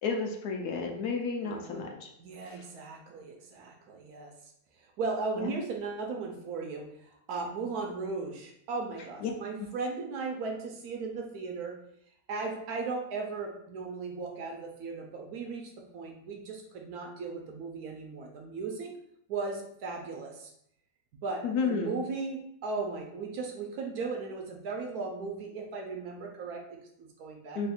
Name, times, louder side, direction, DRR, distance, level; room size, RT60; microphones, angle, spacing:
voice 1, 0.0-2.1 2.5-2.6 5.4-5.6 9.2-9.3 9.6-9.7 21.4-22.0 27.5-27.7, left 5 dB, 70° left, 2 dB, 1.0 m, -32 dB
voice 2, 1.4-1.9 2.2-4.3 5.0-11.8 12.3-19.0 19.3-20.5 21.2-27.6, right 4 dB, 70° right, 2 dB, 1.0 m, -37 dB
3.2 x 2.3 x 4.2 m, 0.74 s
omnidirectional pair, 1.8 m